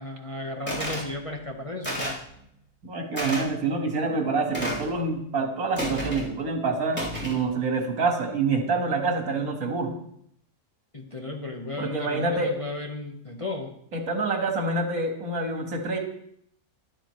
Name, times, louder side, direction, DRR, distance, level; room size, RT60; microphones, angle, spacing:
voice 1, 0.0-2.2 10.9-13.7, left 2 dB, 25° left, 0 dB, 1.1 m, -34 dB
sound 1, 0.7-1.1 1.8-2.2 3.2-3.4 4.5-4.9 5.8-6.3 6.9-7.4, equal, 5° left, 3.7 m, -31 dB
voice 2, 2.8-9.9 11.8-12.5 13.9-16.0, right 3 dB, 70° right, 2 dB, 2.1 m, -27 dB
13.5 x 11.5 x 3.2 m, 0.69 s
omnidirectional pair, 1.6 m